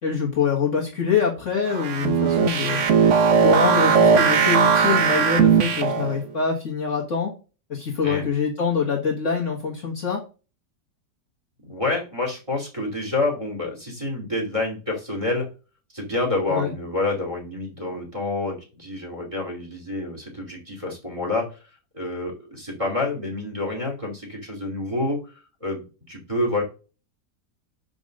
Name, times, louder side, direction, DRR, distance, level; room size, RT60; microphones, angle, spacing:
voice 1, 0.0-2.8 3.3-7.3 7.7-10.2 16.5-16.7, left 5 dB, 45° left, -2 dB, 1.7 m, -24 dB
sound 1, 1.7-6.2, right 6 dB, 50° right, 1.0 m, -18 dB
voice 2, 11.6-15.5 15.9-21.5 21.9-25.2 25.6-26.6, left 2 dB, 20° right, 0 dB, 2.6 m, -28 dB
5.3 x 5.3 x 6.4 m, 0.33 s
omnidirectional pair, 1.9 m